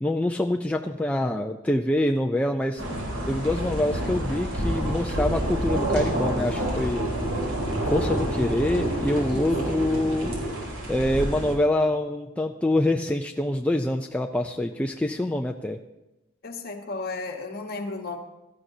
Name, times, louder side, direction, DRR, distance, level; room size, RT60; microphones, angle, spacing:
voice 1, 0.0-2.9 3.3-7.1 7.9-10.3 10.9-15.8, left 1 dB, 5° left, 3 dB, 0.3 m, -25 dB
sound 1, 2.8-11.5, right 1 dB, 80° right, 3.8 m, -28 dB
voice 2, 9.3-9.7 16.4-18.2, left 3 dB, 45° left, 3 dB, 1.2 m, -34 dB
17.0 x 13.0 x 2.7 m, 1.0 s
head